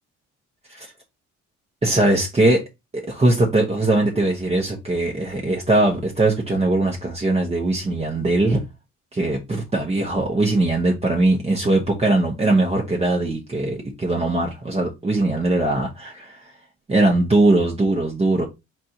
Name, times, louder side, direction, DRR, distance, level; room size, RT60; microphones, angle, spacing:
voice 1, 1.8-2.6 2.9-8.6 9.1-16.4 16.9-18.4, right 2 dB, 20° right, 1.0 m, -20 dB
4.3 x 2.6 x 4.3 m
cardioid pair, 95°, 30 cm